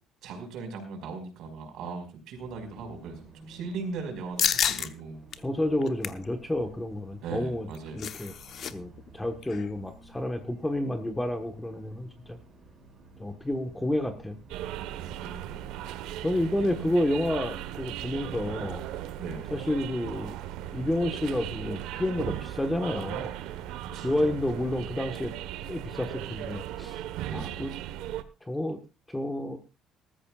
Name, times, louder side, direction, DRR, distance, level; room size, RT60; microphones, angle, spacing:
voice 1, 0.2-5.2 7.2-8.0 15.2-15.6 16.4-17.0 19.2-19.5 23.9-24.3 27.2-27.6, right 4 dB, 60° right, 5 dB, 4.9 m, -39 dB
Bus, 2.3-21.5, right 3 dB, 20° right, 5.3 m, -53 dB
sound 1, 4.4-4.9 5.3-5.4 5.8-6.2 7.5-8.7 9.0-9.1 9.4-9.7, left 9 dB, 40° left, 0.8 m, -29 dB
voice 2, 5.4-7.7 7.9-8.3 8.7-12.4 13.2-14.4 16.2-18.8 19.5-20.4 20.7-23.3 24.0-25.3 25.7-27.0 27.3-27.7 28.4-28.8 29.1-29.6, left 1 dB, 5° left, 6 dB, 1.2 m, -30 dB
sound 2, 14.5-28.2, right 12 dB, 90° right, 1.1 m, -37 dB
20.0 x 14.0 x 2.4 m, 0.31 s
cardioid pair, 175°, 0 cm